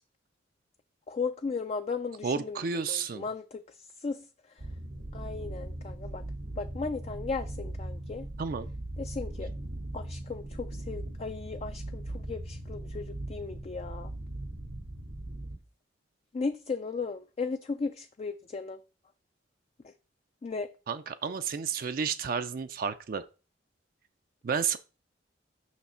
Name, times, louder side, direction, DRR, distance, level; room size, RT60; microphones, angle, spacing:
voice 1, 1.1-3.6 4.0-4.3 5.1-6.2 6.6-8.3 9.0-9.5 9.9-14.1 16.3-18.8 20.4-20.7, left 4 dB, 35° left, 0.3 m, -36 dB
voice 2, 2.2-3.3 8.4-8.7 20.9-23.2 24.4-24.8, right 6 dB, 50° right, 0.4 m, -31 dB
sound 1, 4.6-15.6, right 1 dB, 80° right, 1.2 m, -39 dB
6.1 x 5.8 x 4.2 m
head